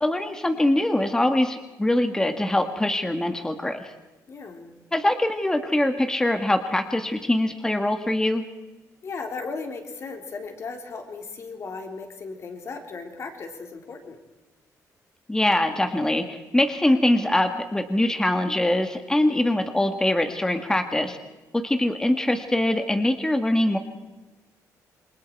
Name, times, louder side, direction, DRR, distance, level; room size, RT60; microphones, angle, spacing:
voice 1, 0.0-3.9 4.9-8.4 15.3-21.2 21.5-23.8, left 1 dB, 10° left, 6 dB, 1.7 m, -23 dB
voice 2, 4.3-4.7 9.0-14.2, left 4 dB, 45° left, 4 dB, 3.6 m, -36 dB
28.0 x 22.5 x 4.7 m, 1.1 s
cardioid pair, 125°, 7 cm